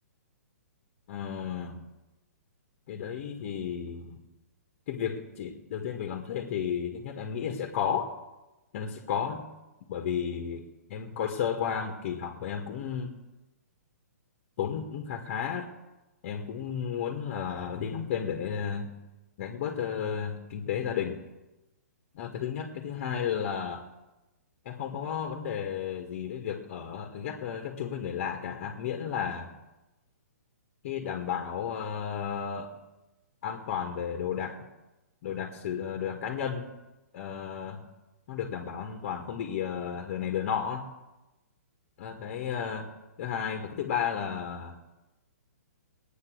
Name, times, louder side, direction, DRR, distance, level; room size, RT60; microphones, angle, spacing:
voice 1, 1.1-1.8 2.9-4.2 4.9-8.1 8.7-9.5 9.9-13.2 14.6-15.7 16.2-19.0 19.4-21.2 22.1-23.9 24.7-29.5 30.8-32.7 33.4-34.7 35.2-36.7 37.1-37.9 38.3-40.9 42.0-42.9 43.2-44.8, left 8 dB, 45° left, 3 dB, 1.9 m, -33 dB
20.0 x 9.6 x 6.4 m, 1.0 s
hypercardioid pair, 130°, 9 cm